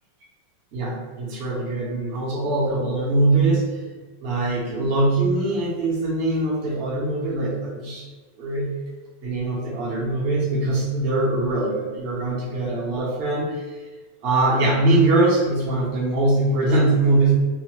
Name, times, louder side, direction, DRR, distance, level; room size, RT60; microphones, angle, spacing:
voice 1, 0.7-3.8 4.2-8.1 8.4-8.7 9.2-13.8 14.2-17.3, right 2 dB, 55° right, -4 dB, 0.7 m, -22 dB
3.0 x 2.0 x 2.9 m, 1.3 s
omnidirectional pair, 1.9 m